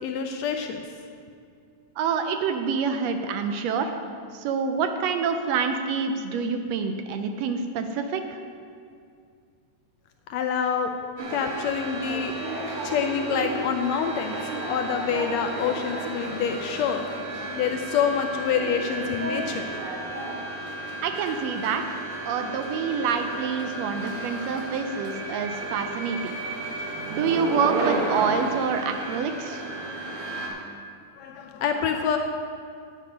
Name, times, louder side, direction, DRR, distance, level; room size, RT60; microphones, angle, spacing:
voice 1, 0.0-0.8 10.3-10.9 11.3-14.4 14.7-19.7 31.2-32.2, left 7 dB, 80° left, 5 dB, 1.6 m, -27 dB
voice 2, 2.0-3.9 4.3-8.4 21.0-22.0 22.2-26.4 27.1-29.6, right 6 dB, 80° right, 7 dB, 1.6 m, -27 dB
sound 1, 11.2-30.5, right 2 dB, 55° right, 1.9 m, -33 dB
9.2 x 9.0 x 5.0 m, 2.3 s
omnidirectional pair, 3.4 m